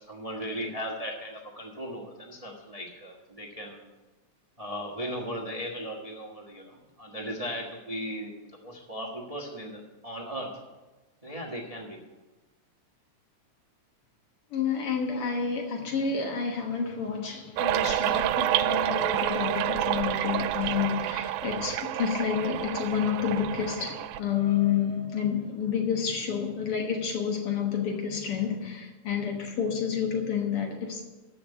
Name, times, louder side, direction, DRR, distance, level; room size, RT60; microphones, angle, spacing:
voice 1, 0.0-3.8 4.6-10.5 11.2-12.0, equal, 35° right, 0.5 m, -37 dB
voice 2, 14.5-31.0, left 7 dB, 55° left, 1.9 m, -29 dB
sound 1, 17.6-24.2, right 13 dB, 85° right, 2.0 m, -28 dB
14.0 x 5.1 x 8.2 m
omnidirectional pair, 3.4 m